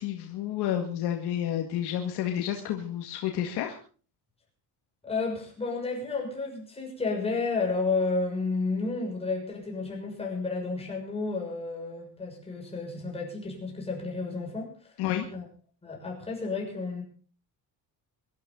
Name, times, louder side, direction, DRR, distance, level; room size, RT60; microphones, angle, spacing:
voice 1, 0.0-3.8 15.0-15.3, left 11 dB, 80° left, 3 dB, 2.1 m, -30 dB
voice 2, 5.0-14.9 15.3-15.4 15.8-17.0, left 3 dB, 15° left, -1 dB, 6.4 m, -31 dB
24.0 x 12.5 x 4.0 m, 0.40 s
cardioid pair, 155°, 39 cm